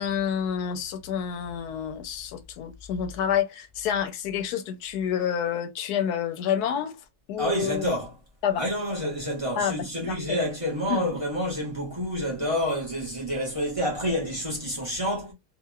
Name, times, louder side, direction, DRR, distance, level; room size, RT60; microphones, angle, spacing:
voice 1, 0.0-7.0 7.3-7.9 8.4-8.7 9.6-10.4 10.9-11.0, left 8 dB, 85° left, 1.1 m, -28 dB
voice 2, 7.4-8.2 8.6-15.3, equal, 25° right, 0.9 m, -28 dB
2.8 x 2.7 x 2.2 m
omnidirectional pair, 1.7 m